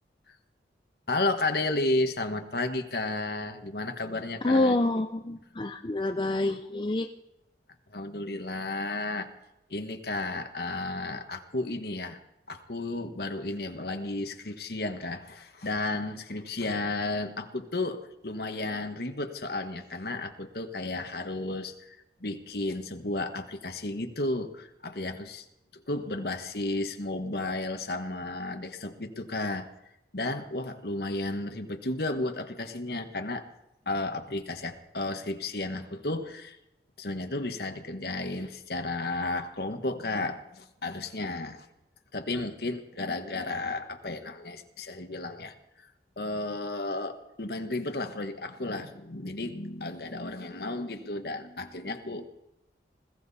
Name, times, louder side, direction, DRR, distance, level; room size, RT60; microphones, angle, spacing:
voice 1, 1.1-4.8 7.9-9.3 9.7-12.2 12.5-25.4 25.7-29.7 30.1-33.5 33.8-36.6 37.0-41.6 42.1-45.9 46.2-52.3, left 2 dB, 60° left, 7 dB, 1.4 m, -33 dB
voice 2, 4.4-7.1, left 2 dB, 25° left, 6 dB, 0.6 m, -27 dB
20.5 x 15.5 x 4.2 m, 0.87 s
head